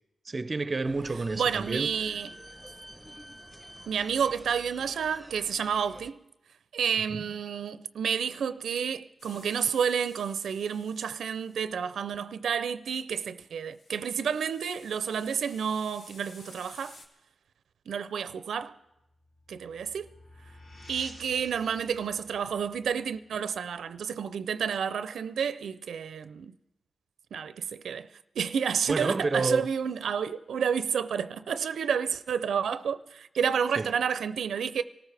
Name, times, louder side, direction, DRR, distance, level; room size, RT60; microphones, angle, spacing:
voice 1, 0.3-2.2 7.1-7.2 28.9-29.7 33.8-33.9, right 3 dB, 35° right, 0.5 m, -29 dB
sound 1, 0.8-6.1, equal, ahead, 0.8 m, -48 dB
voice 2, 1.4-2.3 3.9-6.2 6.7-16.9 17.9-18.7 19.5-20.1 20.9-26.5 27.3-28.1 28.4-34.8, right 7 dB, 90° right, 0.4 m, -30 dB
sound 2, 9.2-11.7 13.7-17.1, left 2 dB, 85° left, 2.0 m, -54 dB
sound 3, 19.0-24.4, left 1 dB, 60° left, 3.1 m, -52 dB
25.5 x 14.0 x 3.3 m
cardioid pair, 85°, 0 cm